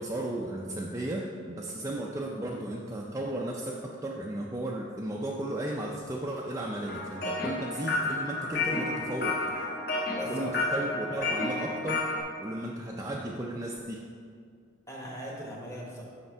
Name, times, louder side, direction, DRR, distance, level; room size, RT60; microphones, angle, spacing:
voice 1, 0.0-9.6 10.3-12.1 12.4-14.0, right 1 dB, 15° right, -2 dB, 0.4 m, -35 dB
sound 1, 6.9-12.2, left 2 dB, 50° left, 1.5 m, -31 dB
voice 2, 10.2-10.7 14.9-16.0, equal, 15° left, -2 dB, 1.1 m, -39 dB
6.7 x 5.7 x 4.5 m, 2.2 s
head